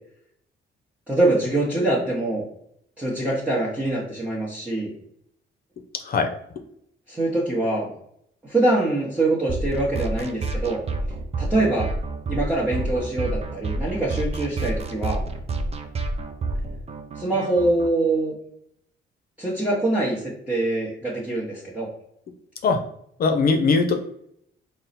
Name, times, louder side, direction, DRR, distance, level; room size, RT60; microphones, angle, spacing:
voice 1, 1.1-2.4 3.0-4.9 7.1-7.9 8.4-10.8 11.4-11.9 12.3-15.2 17.2-18.3 19.4-21.9, right 2 dB, 5° right, -7 dB, 1.0 m, -24 dB
sound 1, 9.5-17.9, right 2 dB, 30° right, 0.5 m, -29 dB
voice 2, 23.2-24.0, left 4 dB, 50° left, 6 dB, 0.5 m, -20 dB
3.8 x 2.1 x 4.1 m, 0.71 s
cardioid pair, 90°, 20 cm